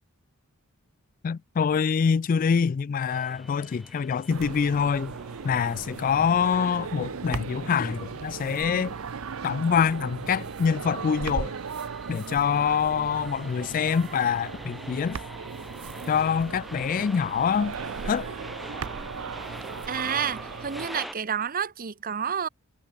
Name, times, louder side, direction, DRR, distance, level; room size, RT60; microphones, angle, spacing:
voice 1, 1.2-5.1 5.4-8.9 9.4-11.5 12.1-15.2 16.1-17.8 18.0-18.3, left 6 dB, 40° left, 0.3 m, -25 dB
sound 1, 3.1-21.1, equal, ahead, 1.3 m, -45 dB
sound 2, 4.3-20.9, right 5 dB, 65° right, 0.6 m, -37 dB
voice 2, 19.9-22.5, right 7 dB, 40° right, 0.8 m, -29 dB
head